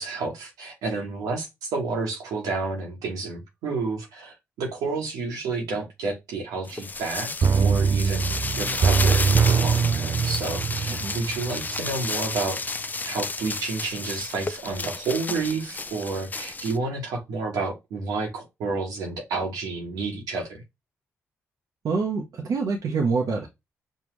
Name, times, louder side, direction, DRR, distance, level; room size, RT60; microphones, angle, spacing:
voice 1, 0.0-12.6 13.0-20.6, right 3 dB, 90° right, 1.3 m, -30 dB
sound 1, 6.7-16.8, left 3 dB, 30° left, 0.4 m, -32 dB
sound 2, 7.4-12.1 12.4-12.5, right 6 dB, 50° right, 0.3 m, -23 dB
voice 2, 21.8-23.5, right 4 dB, 70° right, 0.9 m, -26 dB
5.5 x 2.3 x 3.1 m
supercardioid pair, 50°, 6 cm